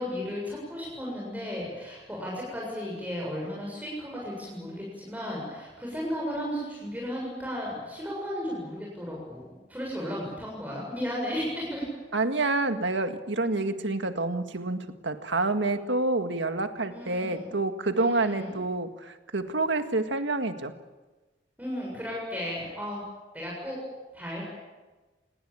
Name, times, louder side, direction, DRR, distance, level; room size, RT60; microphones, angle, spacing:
voice 1, 0.0-11.8 16.9-17.6 17.9-18.6 21.6-23.0 23.3-23.8 24.1-24.4, equal, 10° right, -4 dB, 7.3 m, -34 dB
voice 2, 12.1-20.7, right 2 dB, 80° right, 7 dB, 1.9 m, -28 dB
28.5 x 20.0 x 8.8 m, 1.2 s
head